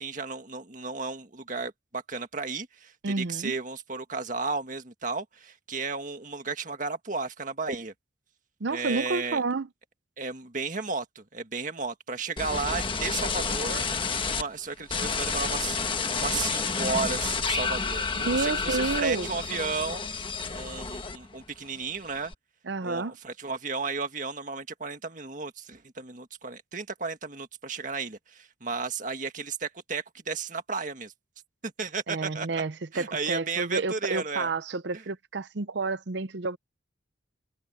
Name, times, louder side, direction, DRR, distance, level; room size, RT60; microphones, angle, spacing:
voice 1, 0.0-7.9 8.7-9.4 10.2-13.8 14.3-15.8 16.1-20.1 20.5-22.3 22.8-31.1 31.6-32.5 32.9-34.5 34.9-35.0, right 4 dB, 45° right, 1.8 m, -34 dB
voice 2, 3.0-3.5 8.6-9.7 18.2-19.3 22.7-23.2 32.1-36.6, right 3 dB, 65° right, 0.7 m, -30 dB
sound 1, 12.4-14.4 14.9-21.5 21.8-22.3, left 5 dB, 25° left, 1.3 m, -30 dB
head